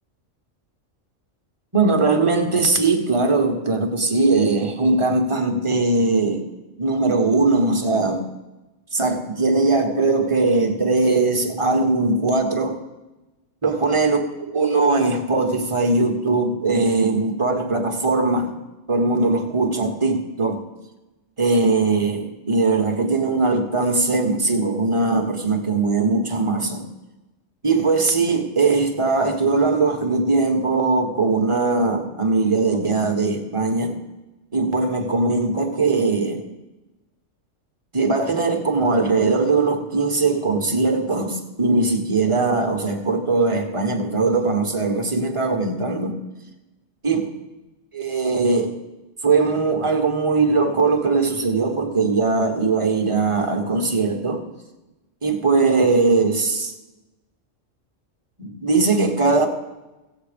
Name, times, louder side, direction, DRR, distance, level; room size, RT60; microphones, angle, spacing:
voice 1, 1.7-6.5 6.8-8.2 8.9-12.8 13.6-14.2 14.5-18.5 18.9-20.6 21.4-26.9 27.6-34.0 34.5-36.5 37.9-46.2 47.0-47.2 47.9-48.7 49.2-54.4 55.2-56.7 58.4-59.5, right 3 dB, 25° right, 4 dB, 1.2 m, -20 dB
15.5 x 8.0 x 5.1 m, 1.1 s
omnidirectional pair, 1.3 m